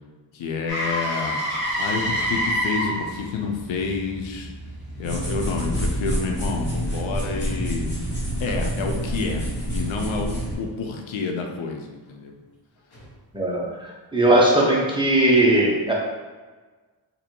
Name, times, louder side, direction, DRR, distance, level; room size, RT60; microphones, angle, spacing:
voice 1, 0.3-1.4 1.8-4.5 5.0-7.9 8.4-12.3, left 4 dB, 90° left, 2 dB, 0.7 m, -29 dB
Motor vehicle (road), 0.7-8.6 12.9-13.1, equal, 55° left, 1.2 m, -30 dB
sound 1, 5.0-10.5, right 1 dB, 25° left, 1.4 m, -27 dB
voice 2, 13.3-15.9, right 1 dB, 10° right, -5 dB, 0.7 m, -19 dB
3.0 x 2.7 x 4.3 m, 1.3 s
wide cardioid pair, 150°, 45 cm